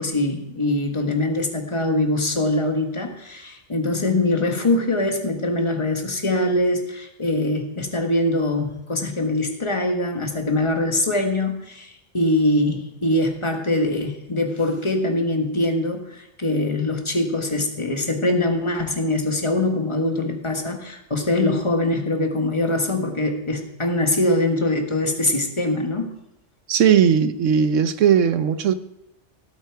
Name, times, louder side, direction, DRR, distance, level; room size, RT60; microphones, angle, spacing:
voice 1, 0.0-26.1, left 2 dB, 25° left, 4 dB, 1.6 m, -23 dB
voice 2, 26.7-28.7, right 8 dB, 80° right, 11 dB, 1.2 m, -18 dB
16.5 x 8.7 x 4.7 m, 0.83 s
omnidirectional pair, 1.3 m